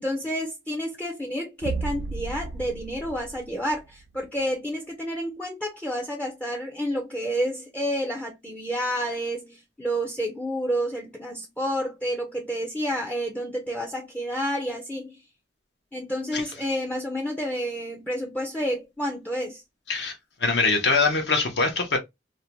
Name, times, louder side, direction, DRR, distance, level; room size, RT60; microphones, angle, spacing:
voice 1, 0.0-15.2 15.9-19.6, equal, 10° left, 0.4 m, -30 dB
sound 1, 1.6-4.2, right 3 dB, 70° right, 0.3 m, -34 dB
voice 2, 20.4-22.0, left 3 dB, 65° left, 0.7 m, -23 dB
2.5 x 2.1 x 2.8 m
head